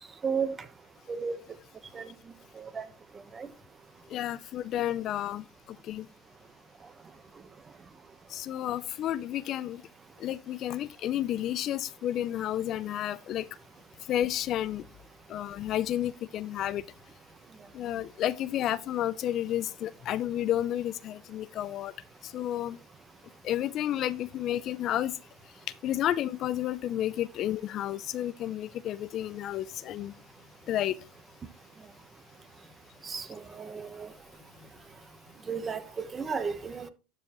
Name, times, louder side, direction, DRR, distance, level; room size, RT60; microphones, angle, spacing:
voice 1, 0.2-0.5 1.1-1.4 1.9-2.1 2.7-2.8 3.4-3.5 33.1-34.1 35.5-36.9, right 6 dB, 25° right, 1.0 m, -33 dB
voice 2, 4.1-5.4 5.8-6.1 8.3-9.8 10.2-13.5 14.1-14.8 15.3-16.8 17.7-21.9 22.2-22.8 23.4-25.1 25.8-30.2 30.7-31.0, left 12 dB, 50° left, 0.4 m, -31 dB
12.5 x 4.8 x 3.0 m
supercardioid pair, 105°, 0 cm